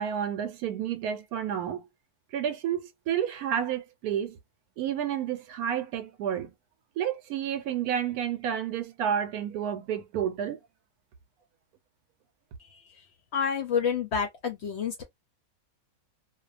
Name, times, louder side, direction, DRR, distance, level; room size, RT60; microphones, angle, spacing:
voice 1, 0.0-1.9 2.3-4.4 4.8-6.5 7.0-10.6, right 9 dB, 80° right, 1.1 m, -30 dB
voice 2, 13.3-15.0, left 6 dB, 65° left, 0.7 m, -28 dB
2.5 x 2.2 x 2.4 m
omnidirectional pair, 1.6 m